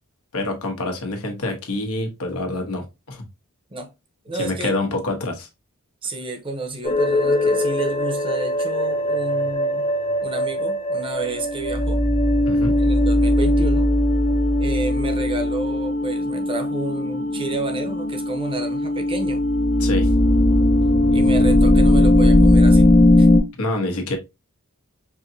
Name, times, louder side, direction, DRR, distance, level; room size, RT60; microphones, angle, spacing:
voice 1, 0.3-3.2 4.4-5.5 12.4-12.8 19.8-20.1 23.6-24.2, left 2 dB, 90° left, 1.1 m, -26 dB
voice 2, 4.2-4.7 6.0-9.9 10.2-12.0 12.8-13.9 14.6-19.4 21.1-22.9 23.2-23.3, right 2 dB, 25° right, 0.8 m, -30 dB
sound 1, 6.8-23.4, left 1 dB, 30° left, 0.9 m, -19 dB
4.7 x 2.8 x 2.7 m
head